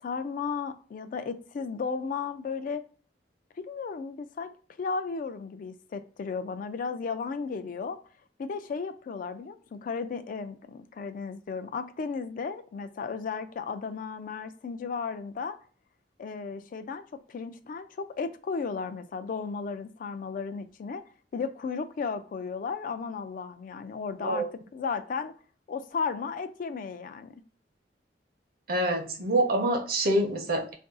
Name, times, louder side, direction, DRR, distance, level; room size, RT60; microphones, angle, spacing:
voice 1, 0.0-2.8 3.6-4.5 4.8-8.0 8.4-15.6 16.2-17.0 17.3-21.0 21.3-24.5 24.7-25.3 25.7-27.3, left 5 dB, 50° left, 0.3 m, -34 dB
voice 2, 28.7-30.7, right 1 dB, 60° right, 0.7 m, -26 dB
2.5 x 2.3 x 3.6 m
head